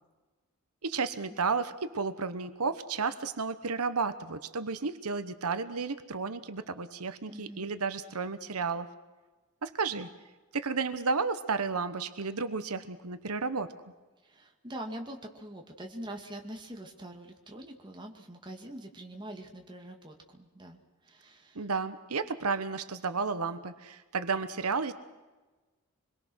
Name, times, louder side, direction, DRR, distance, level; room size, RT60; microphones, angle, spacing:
voice 1, 0.8-8.9 9.6-10.1 10.5-13.7 21.5-24.9, right 4 dB, 85° right, 11 dB, 1.1 m, -32 dB
voice 2, 7.3-7.7 14.2-21.7, right 1 dB, 20° right, 2 dB, 2.3 m, -44 dB
26.5 x 22.0 x 6.4 m, 1.2 s
head